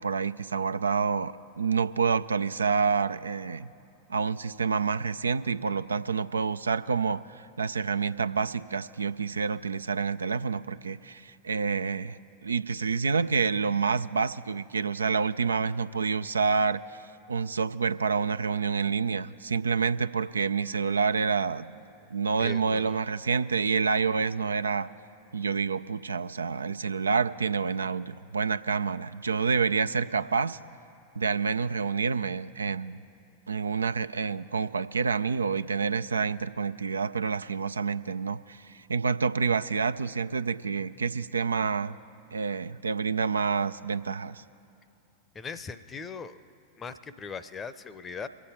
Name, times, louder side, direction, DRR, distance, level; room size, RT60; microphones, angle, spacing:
voice 1, 0.0-3.7 4.1-16.8 17.3-21.7 22.1-24.9 25.3-30.6 31.2-33.0 33.5-42.0 42.3-44.4, right 5 dB, 75° right, 12 dB, 0.3 m, -28 dB
voice 2, 22.4-23.0 45.3-46.4 46.8-48.3, left 5 dB, 20° left, 13 dB, 0.6 m, -39 dB
24.5 x 8.4 x 4.3 m, 2.7 s
figure-of-eight pair, 90°, 0 cm